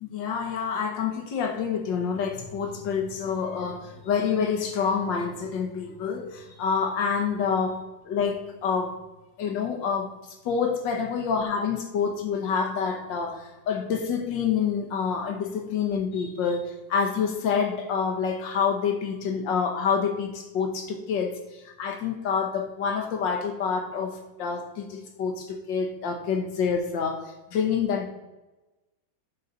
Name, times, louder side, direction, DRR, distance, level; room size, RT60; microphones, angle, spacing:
voice 1, 0.0-7.8 8.1-9.0 9.4-28.1, left 6 dB, 75° left, 4 dB, 1.8 m, -27 dB
10.0 x 4.0 x 4.1 m, 1.1 s
omnidirectional pair, 2.0 m